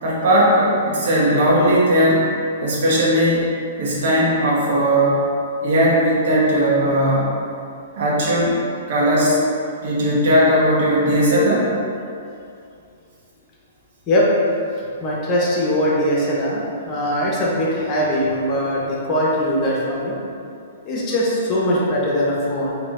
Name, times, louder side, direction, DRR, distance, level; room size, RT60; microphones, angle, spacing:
voice 1, 0.0-2.3 2.6-3.5 3.8-5.3 5.6-7.3 7.9-8.6 8.9-9.4 9.8-11.7, equal, 60° right, -6 dB, 1.2 m, -17 dB
voice 2, 15.0-20.1 20.8-22.8, equal, 30° left, -4 dB, 0.9 m, -21 dB
4.0 x 2.8 x 3.7 m, 2.5 s
hypercardioid pair, 130°, 0 cm